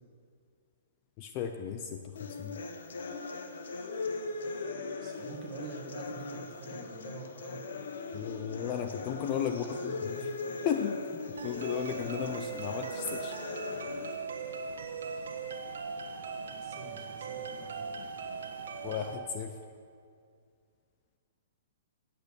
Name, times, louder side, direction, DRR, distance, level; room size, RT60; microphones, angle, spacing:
voice 1, 1.2-2.6 8.1-10.1 10.6-11.0 11.4-13.3 18.8-19.5, left 8 dB, 25° left, 6 dB, 0.5 m, -34 dB
sound 1, 2.2-14.2, left 3 dB, 65° left, 1.4 m, -39 dB
voice 2, 5.0-7.6 9.6-10.4 16.5-18.1, right 5 dB, 25° right, 1 dB, 1.6 m, -46 dB
sound 2, 11.4-19.2, right 5 dB, 85° right, 1.6 m, -39 dB
17.0 x 8.1 x 6.9 m, 2.2 s
hypercardioid pair, 180°, 0 cm